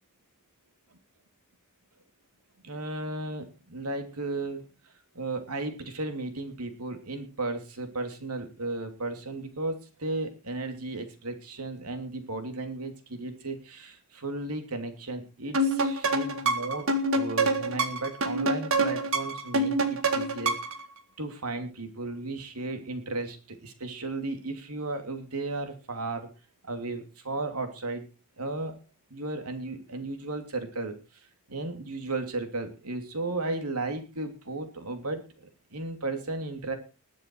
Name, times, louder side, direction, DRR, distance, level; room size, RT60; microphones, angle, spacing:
voice 1, 2.6-4.6 5.1-16.9 17.1-20.5 21.2-26.3 26.6-28.0 28.4-28.8 29.1-31.0 31.5-36.8, right 2 dB, 90° right, 6 dB, 3.0 m, -35 dB
sound 1, 15.5-20.8, right 2 dB, 65° right, 2.0 m, -26 dB
20.5 x 7.6 x 4.7 m, 0.32 s
head